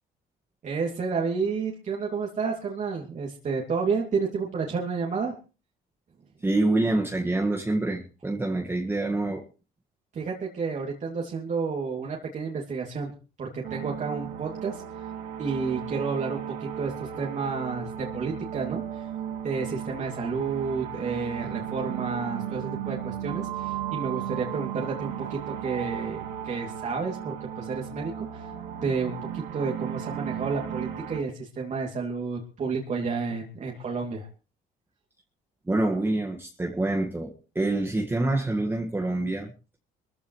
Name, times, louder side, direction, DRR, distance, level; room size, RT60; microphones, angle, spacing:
voice 1, 0.6-5.3 10.1-13.1 13.4-14.8 15.4-19.1 19.4-28.5 28.8-34.3, right 5 dB, 45° right, 2.7 m, -31 dB
voice 2, 6.4-9.5 35.7-39.5, right 2 dB, 15° right, 1.8 m, -26 dB
sound 1, 13.6-31.2, right 9 dB, 90° right, 2.4 m, -35 dB
22.5 x 15.0 x 3.2 m
cardioid pair, 110°, 17 cm